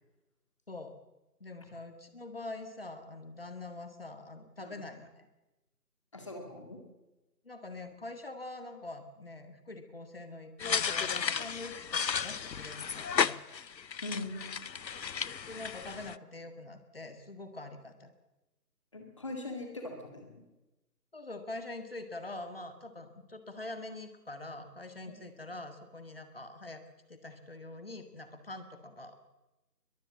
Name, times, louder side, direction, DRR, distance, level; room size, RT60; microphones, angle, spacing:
voice 1, 1.4-5.3 7.4-13.4 15.5-18.1 21.1-26.8 27.1-29.2, left 2 dB, 35° left, 8 dB, 1.8 m, -44 dB
voice 2, 6.1-6.8 14.0-14.7 18.9-20.4 25.1-25.2, left 2 dB, 20° left, 3 dB, 2.1 m, -41 dB
sound 1, 10.6-16.2, left 7 dB, 85° left, 0.7 m, -33 dB
22.0 x 21.0 x 7.3 m, 1.0 s
figure-of-eight pair, 165°, 49 cm